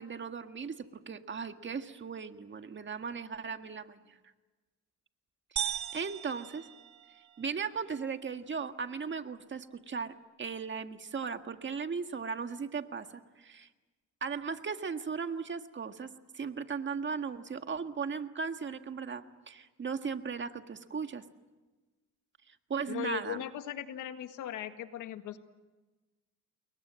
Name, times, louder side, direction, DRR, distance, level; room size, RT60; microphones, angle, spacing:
voice 1, 0.0-4.2 5.5-6.7 7.4-13.7 14.2-21.2 22.5-23.4, right 5 dB, 40° right, 7 dB, 1.8 m, -37 dB
sound 1, 5.6-7.5, right 10 dB, 70° right, 1.9 m, -37 dB
voice 2, 22.9-25.4, left 11 dB, 85° left, 8 dB, 1.8 m, -38 dB
29.5 x 22.5 x 7.6 m, 1.2 s
cardioid pair, 90°, 30 cm